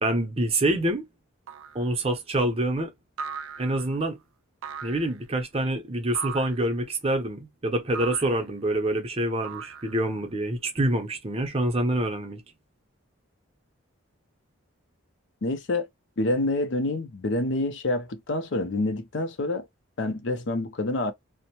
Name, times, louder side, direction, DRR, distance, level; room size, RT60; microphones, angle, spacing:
voice 1, 0.0-1.0 1.7-2.9 3.6-4.2 4.8-12.4, right 1 dB, 30° right, 0.6 m, -26 dB
sound 1, 1.5-1.9 3.2-4.0 4.6-5.2 6.1-6.7 7.9-8.5 9.4-10.2, right 6 dB, 75° right, 0.3 m, -38 dB
voice 2, 15.4-15.9 16.2-19.7 20.0-21.1, left 2 dB, 60° left, 0.5 m, -27 dB
2.6 x 2.0 x 2.9 m
head